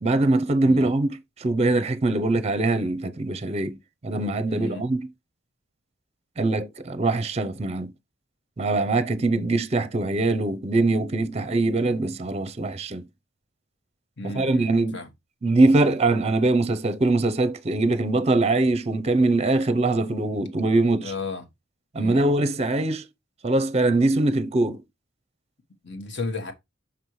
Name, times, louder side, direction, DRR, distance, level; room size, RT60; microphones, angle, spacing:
voice 1, 0.0-5.1 6.4-7.9 8.6-13.0 14.2-15.0 15.4-21.1 21.9-23.0 23.4-24.8, right 2 dB, 30° right, 0.6 m, -22 dB
voice 2, 4.5-4.8 14.2-15.1 21.0-21.4 22.0-22.3 25.8-26.5, left 3 dB, 60° left, 1.3 m, -33 dB
5.8 x 5.4 x 3.1 m
head